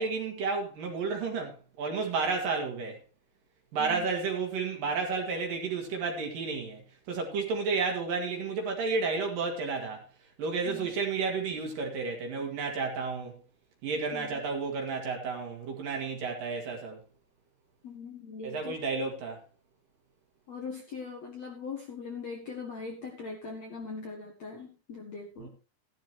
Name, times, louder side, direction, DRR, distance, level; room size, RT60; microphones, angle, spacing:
voice 1, 0.0-3.0 3.7-6.8 7.1-10.0 10.4-13.4 13.8-17.0 18.4-19.4, right 4 dB, 55° right, 3.2 m, -31 dB
voice 2, 17.8-18.8 20.5-25.5, left 4 dB, 55° left, 2.0 m, -41 dB
14.5 x 12.0 x 3.0 m
omnidirectional pair, 5.3 m